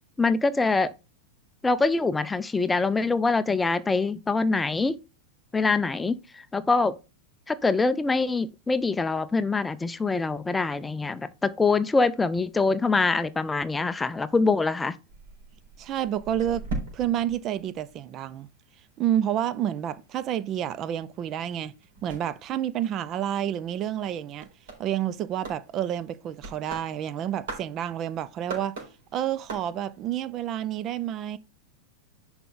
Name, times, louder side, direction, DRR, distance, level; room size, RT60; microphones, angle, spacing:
voice 1, 0.2-0.9 1.6-5.0 5.5-7.0 7.5-14.9, left 3 dB, 10° left, 0.6 m, -24 dB
sound 1, 15.1-18.5 18.8-30.1, right 3 dB, 55° right, 3.8 m, -42 dB
voice 2, 15.8-16.7 16.9-18.5 19.0-21.7 22.0-24.5 24.8-28.8 29.1-31.4, right 11 dB, 35° right, 0.6 m, -29 dB
11.0 x 4.4 x 3.8 m
figure-of-eight pair, 90°, 0 cm